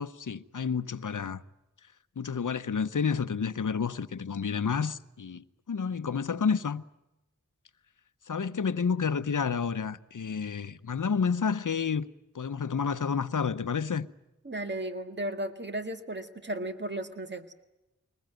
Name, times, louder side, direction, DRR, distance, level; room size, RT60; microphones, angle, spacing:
voice 1, 0.0-1.4 2.2-6.8 8.3-12.1 12.3-14.1, left 6 dB, 80° left, 0.8 m, -30 dB
voice 2, 14.4-17.5, right 1 dB, 35° right, 1.8 m, -35 dB
22.5 x 20.0 x 9.1 m
wide cardioid pair, 65°, 30 cm